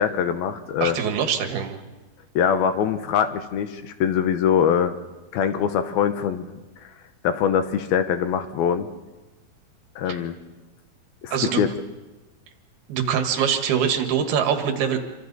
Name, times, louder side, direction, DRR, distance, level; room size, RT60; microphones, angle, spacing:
voice 1, 0.0-1.0 2.4-4.9 5.3-6.5 7.2-8.9 10.0-10.3 11.2-11.7, left 8 dB, 75° left, 9 dB, 2.7 m, -23 dB
voice 2, 0.8-1.8 10.1-10.2 11.3-11.6 12.9-15.0, right 8 dB, 75° right, 6 dB, 3.4 m, -23 dB
27.5 x 25.0 x 4.1 m, 1.1 s
omnidirectional pair, 4.6 m